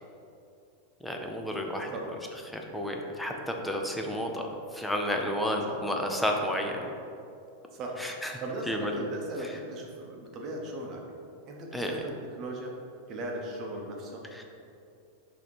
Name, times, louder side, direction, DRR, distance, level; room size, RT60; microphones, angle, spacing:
voice 1, 1.0-6.9 8.0-9.1 9.4-9.6 11.7-12.0 14.3-14.4, equal, ahead, 1 dB, 0.5 m, -32 dB
voice 2, 7.7-11.0 11.5-12.7 13.1-14.2, right 1 dB, 30° right, 0 dB, 0.8 m, -38 dB
6.1 x 2.9 x 5.3 m, 2.6 s
supercardioid pair, 160°, 0 cm